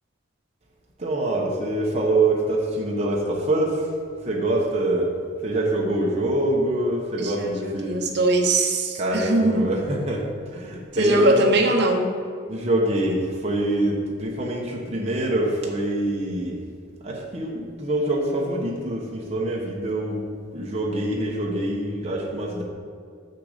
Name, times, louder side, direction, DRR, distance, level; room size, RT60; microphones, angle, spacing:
voice 1, 1.0-3.9 4.2-5.1 5.4-8.0 8.9-11.4 12.5-16.6 17.0-20.2 20.5-22.6, right 1 dB, 30° right, -3 dB, 1.0 m, -25 dB
voice 2, 7.2-9.7 10.9-12.1, right 2 dB, 55° right, 3 dB, 0.9 m, -21 dB
6.7 x 6.5 x 5.0 m, 2.2 s
head